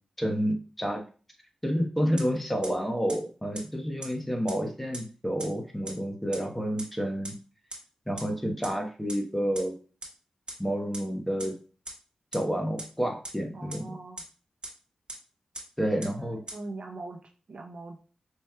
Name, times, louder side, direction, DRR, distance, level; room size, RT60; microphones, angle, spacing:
voice 1, 0.2-1.0 1.6-7.3 8.1-9.7 10.6-11.5 12.3-13.9 15.8-16.4, equal, 5° left, 2 dB, 1.0 m, -29 dB
sound 1, 2.2-2.3 2.6-2.7 3.1-3.2 3.5-3.6 4.0-4.1 4.5-4.6 4.9-5.0 5.4-5.5 5.9-6.0 6.3-6.4 6.8-6.9 7.2-7.3 7.7-7.8 8.2-8.3 8.6-8.7 9.1-9.2 9.5-9.6 10.0-10.1 10.5-10.6 10.9-11.0 11.4-11.5 11.8-11.9 12.3-12.4 12.8-12.9 13.2-13.3 13.7-13.8 14.2-14.3 14.6-14.7 15.1-15.2 15.5-15.6 16.0-16.1 16.5-16.6, right 2 dB, 45° right, 1.4 m, -37 dB
voice 2, 13.5-14.2 16.2-18.0, right 2 dB, 60° right, 3 dB, 0.6 m, -42 dB
5.3 x 3.0 x 2.2 m, 0.37 s
cardioid pair, 65°, 2 cm